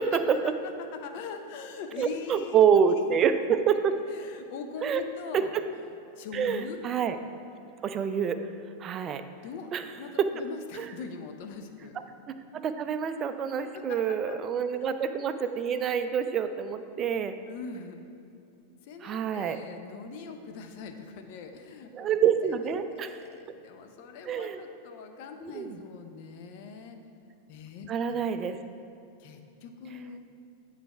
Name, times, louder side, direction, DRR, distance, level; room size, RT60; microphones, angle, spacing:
voice 1, 0.1-2.8 4.1-5.5 6.2-6.8 9.4-12.0 13.6-14.4 14.8-14.9 17.5-18.1 18.8-21.9 22.6-27.0 27.5-28.2 29.2-30.2, left 5 dB, 45° left, 6 dB, 0.5 m, -42 dB
voice 2, 2.0-3.9 4.8-5.0 5.3-5.6 6.3-7.2 7.8-8.4 8.8-9.2 9.7-9.8 10.8-10.9 12.3-17.4 19.0-19.6 21.9-23.1 24.3-24.6 25.5-25.8 27.9-28.6, right 7 dB, 30° right, 9 dB, 0.4 m, -27 dB
8.9 x 3.3 x 5.0 m, 2.7 s
figure-of-eight pair, 90°, 0 cm